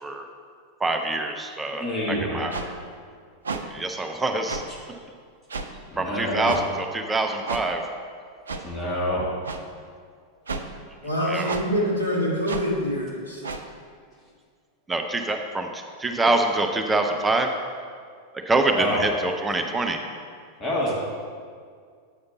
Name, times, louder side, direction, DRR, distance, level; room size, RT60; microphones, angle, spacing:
voice 1, 0.8-2.5 3.6-4.6 6.0-7.8 11.3-11.6 14.9-17.5 18.5-20.0, right 2 dB, 10° right, 4 dB, 0.5 m, -25 dB
voice 2, 1.7-2.5 5.9-6.6 8.6-9.3 18.7-19.1 20.6-20.9, left 1 dB, 20° left, -5 dB, 1.6 m, -27 dB
sound 1, 2.5-2.7 3.4-3.6 4.5-4.6 5.5-5.7 6.4-6.6 7.5-7.6 8.5-8.6 9.4-9.6 10.5-10.7 11.5-11.6 12.5-12.6 13.4-13.6, right 4 dB, 70° right, 0.5 m, -31 dB
voice 3, 11.0-13.4, equal, 85° left, -5 dB, 1.8 m, -25 dB
8.1 x 5.1 x 4.0 m, 2.1 s
figure-of-eight pair, 90°, 0 cm